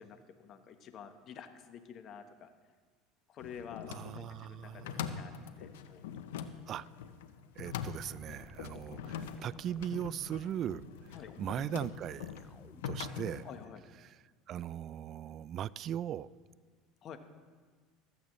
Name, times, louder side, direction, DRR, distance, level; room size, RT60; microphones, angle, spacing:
voice 1, 0.0-2.5 3.3-6.0 6.4-6.5 11.1-11.3 13.4-13.8 17.0-17.2, left 7 dB, 50° left, 8 dB, 1.1 m, -49 dB
sound 1, 3.4-13.6, left 8 dB, 85° left, 0.7 m, -43 dB
voice 2, 3.9-5.2 6.7-6.9 7.6-12.3 12.8-13.5 14.0-14.2 14.5-16.3, right 10 dB, 50° right, 20 dB, 0.3 m, -39 dB
sound 2, 7.6-13.2, left 4 dB, 20° left, 0.5 m, -57 dB
15.0 x 13.5 x 3.2 m, 1.5 s
supercardioid pair, 90°, 0 cm